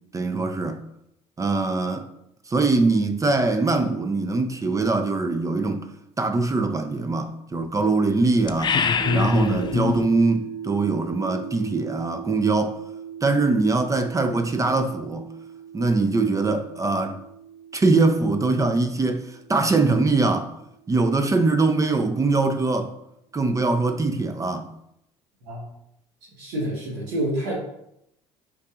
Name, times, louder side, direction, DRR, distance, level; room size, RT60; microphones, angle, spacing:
voice 1, 0.1-0.8 1.4-2.1 2.5-5.9 6.2-8.8 9.1-12.8 13.2-15.3 15.7-17.2 17.7-20.5 20.9-22.9 23.3-24.7, right 3 dB, 20° right, 0.5 m, -22 dB
sound 1, 8.5-10.1, left 5 dB, 30° left, 0.4 m, -23 dB
sound 2, 9.0-21.1, right 8 dB, 55° right, 0.7 m, -39 dB
voice 2, 26.4-27.5, right 1 dB, 75° right, 1.2 m, -28 dB
5.4 x 4.0 x 2.4 m
hypercardioid pair, 65°, 15 cm